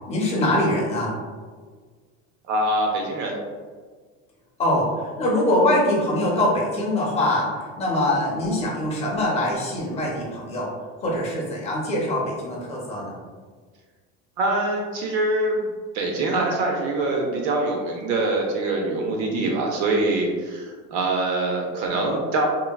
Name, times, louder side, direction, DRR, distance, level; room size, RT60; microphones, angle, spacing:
voice 1, 0.1-1.1 4.6-10.7 11.0-13.2, left 1 dB, 20° left, -4 dB, 0.5 m, -23 dB
voice 2, 2.5-3.4 14.4-22.5, right 2 dB, 65° right, 0 dB, 0.5 m, -24 dB
3.7 x 2.1 x 2.2 m, 1.5 s
cardioid pair, 175°, 32 cm